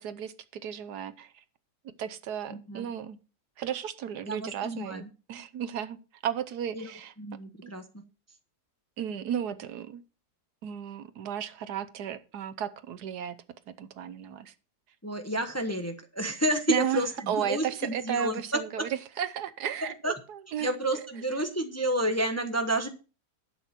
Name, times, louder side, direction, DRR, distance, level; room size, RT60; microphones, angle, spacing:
voice 1, 0.0-1.4 1.8-3.2 3.6-6.0 6.2-7.1 7.6-7.7 9.0-10.0 10.6-13.4 13.8-14.5 16.7-18.9 19.2-20.7 20.9-21.0, right 9 dB, 75° right, 13 dB, 1.3 m, -34 dB
voice 2, 2.5-2.9 4.2-5.1 6.7-6.9 7.2-8.0 15.0-18.9 20.0-20.1 20.6-22.9, right 1 dB, 10° left, 6 dB, 0.9 m, -30 dB
11.5 x 8.1 x 4.4 m, 0.34 s
omnidirectional pair, 1.8 m